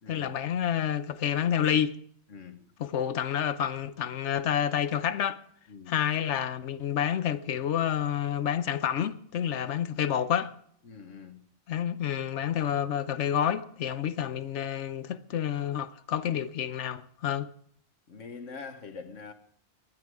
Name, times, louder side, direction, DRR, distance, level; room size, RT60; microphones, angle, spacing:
voice 1, 0.1-2.0 2.8-5.4 5.9-10.5 11.7-17.5, left 9 dB, 70° left, 1.1 m, -29 dB
voice 2, 2.3-2.6 5.7-6.0 10.8-11.4 18.1-19.3, left 5 dB, 90° left, 1.7 m, -44 dB
19.5 x 11.5 x 4.8 m
omnidirectional pair, 1.2 m